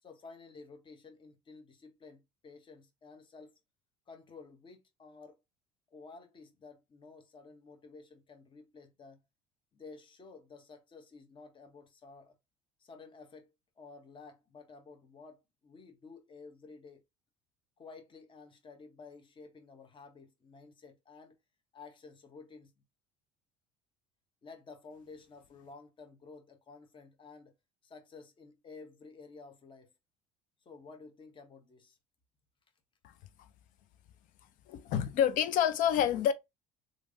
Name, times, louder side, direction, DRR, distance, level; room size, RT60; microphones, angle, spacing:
voice 1, 0.0-3.6 4.1-5.4 5.9-9.2 9.7-12.3 12.8-13.5 13.8-17.0 17.8-21.4 21.7-22.7 24.4-27.5 27.8-29.9 30.6-32.0, left 4 dB, 30° left, 1.0 m, -53 dB
voice 2, 34.7-36.3, left 9 dB, 60° left, 0.5 m, -27 dB
3.2 x 2.5 x 2.6 m
hypercardioid pair, 70°, 16 cm